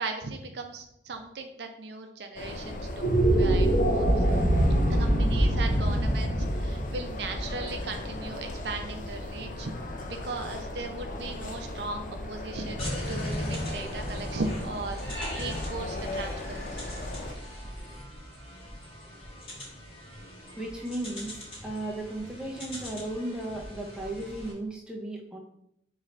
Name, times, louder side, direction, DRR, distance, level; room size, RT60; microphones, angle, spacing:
voice 1, 0.0-4.2 4.9-9.7 10.0-17.0, right 3 dB, 65° right, 5 dB, 0.5 m, -37 dB
sound 1, 2.4-17.3, left 2 dB, 45° left, 0.5 m, -38 dB
sound 2, 2.9-9.3, right 1 dB, 65° left, 1.0 m, -25 dB
sound 3, 12.8-24.5, equal, 30° left, 1.3 m, -39 dB
voice 2, 20.6-21.3 21.6-25.4, right 1 dB, 5° right, -1 dB, 0.6 m, -35 dB
3.8 x 3.1 x 4.2 m, 0.76 s
head